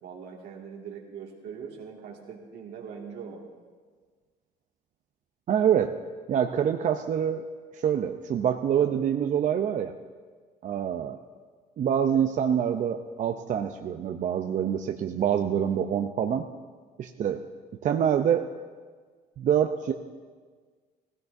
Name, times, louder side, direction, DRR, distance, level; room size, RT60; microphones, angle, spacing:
voice 1, 0.0-3.4, right 6 dB, 75° right, 0 dB, 2.1 m, -41 dB
voice 2, 5.5-5.9 6.3-7.4 7.7-9.9 10.6-11.2 11.8-16.5 17.0-17.4 17.8-18.5 19.4-19.9, right 9 dB, 50° right, 6 dB, 0.5 m, -25 dB
17.0 x 16.0 x 2.6 m, 1.5 s
cardioid pair, 110°, 17 cm